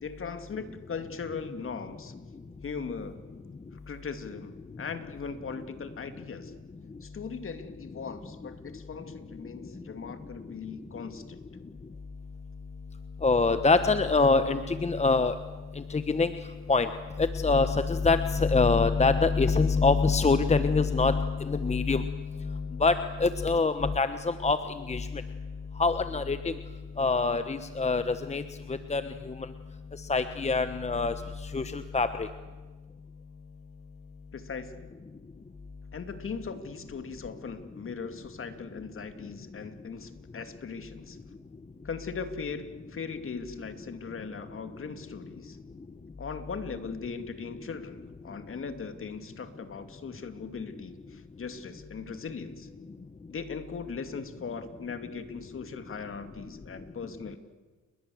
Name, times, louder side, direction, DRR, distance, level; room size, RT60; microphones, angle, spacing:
voice 1, 0.0-2.1 2.6-3.2 3.7-6.5 7.0-11.4 34.3-34.9 35.9-41.2 41.8-45.6 46.2-52.7 53.3-57.4, left 5 dB, 45° left, 8 dB, 2.6 m, -39 dB
voice 2, 13.2-15.3 15.7-16.3 16.7-16.9 17.2-24.6 24.9-25.1 25.8-26.5 27.0-28.4 28.7-29.3 30.1-31.1 31.5-32.3, left 4 dB, 20° left, 10 dB, 1.2 m, -25 dB
29.5 x 21.5 x 7.9 m, 1.3 s
cardioid pair, 90°, 30 cm